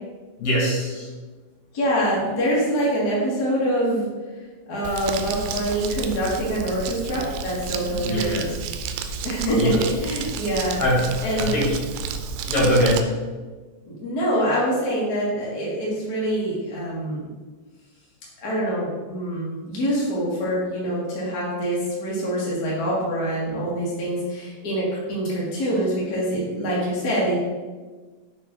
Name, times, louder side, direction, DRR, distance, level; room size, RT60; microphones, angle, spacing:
voice 1, 0.4-1.1 8.0-8.5 9.6-9.8 10.8-11.1 11.4-11.8 12.5-13.0, equal, 45° left, -5 dB, 2.8 m, -22 dB
voice 2, 1.7-4.1 4.7-8.4 9.2-10.8 11.2-11.6 13.8-17.3 18.4-27.4, equal, 70° left, -6 dB, 0.9 m, -25 dB
Crumpling crinkling, 4.8-13.0, right 5 dB, 90° right, 2.9 m, -31 dB
6.5 x 4.7 x 5.3 m, 1.4 s
omnidirectional pair, 5.2 m